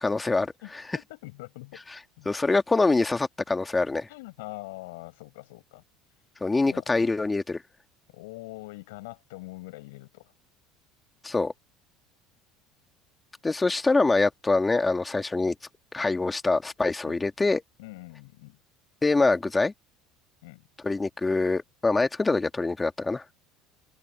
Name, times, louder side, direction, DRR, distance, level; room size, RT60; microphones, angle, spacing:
voice 1, 0.0-0.5 2.2-4.1 6.4-7.6 11.2-11.5 13.4-15.5 15.9-17.6 19.0-19.7 20.8-23.2, left 3 dB, 15° left, 1.6 m, -24 dB
voice 2, 0.6-1.8 2.2-2.3 4.1-5.8 6.7-7.1 8.1-10.3 17.0-17.2 17.8-18.6 20.4-20.7, left 22 dB, 85° left, 7.6 m, -43 dB
open air
supercardioid pair, 100°, 0 cm